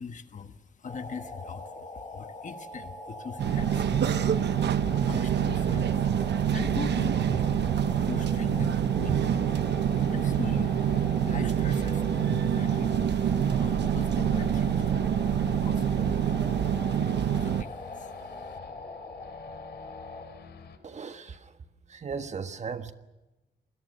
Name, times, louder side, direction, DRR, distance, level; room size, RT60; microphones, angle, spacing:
voice 1, 0.0-9.8 10.1-16.5 16.8-18.6, left 6 dB, 45° left, 9 dB, 1.4 m, -42 dB
sound 1, 0.8-20.2, left 2 dB, 30° left, 3.7 m, -42 dB
sound 2, 3.4-17.6, right 9 dB, 75° right, 1.0 m, -26 dB
Race car auto racing / Idling / Accelerating revving vroom, 6.9-20.8, left 6 dB, 70° left, 3.2 m, -51 dB
voice 2, 20.8-21.5 21.9-22.9, right 5 dB, 40° right, 9 dB, 1.5 m, -37 dB
28.5 x 21.0 x 6.8 m, 1.0 s
wide cardioid pair, 170°, 18 cm